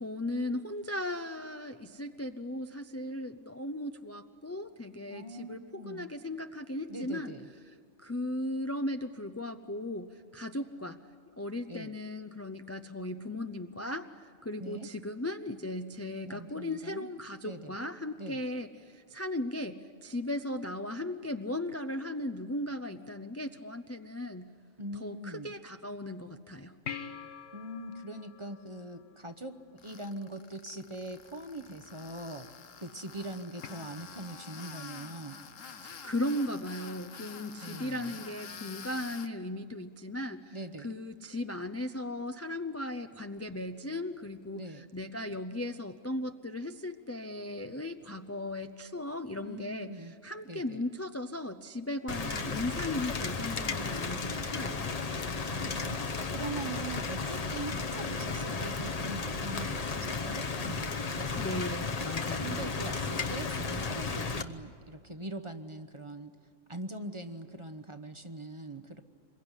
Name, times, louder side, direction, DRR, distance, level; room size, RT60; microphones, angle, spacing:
voice 1, 0.0-7.3 8.0-11.0 11.4-24.5 25.0-26.8 35.6-40.6 40.8-54.9 61.4-62.7, left 1 dB, 20° left, 7 dB, 0.4 m, -37 dB
voice 2, 5.1-6.1 6.9-7.5 11.7-12.0 14.6-14.9 16.2-17.1 17.4-17.7 18.2-18.4 24.8-25.5 27.5-35.5 37.6-38.3 40.5-41.0 44.5-44.9 49.4-50.1 50.5-50.8 55.5-56.0 56.3-61.7 62.4-66.3 66.7-69.0, right 1 dB, 25° right, 9 dB, 0.9 m, -42 dB
sound 1, 26.9-29.6 33.6-33.7, left 7 dB, 60° left, 1.3 m, -44 dB
Tools, 29.8-39.3, left 6 dB, 75° left, 1.4 m, -48 dB
Rain, 52.1-64.4, left 4 dB, 35° left, 0.9 m, -34 dB
26.5 x 22.5 x 9.9 m, 2.1 s
omnidirectional pair, 1.3 m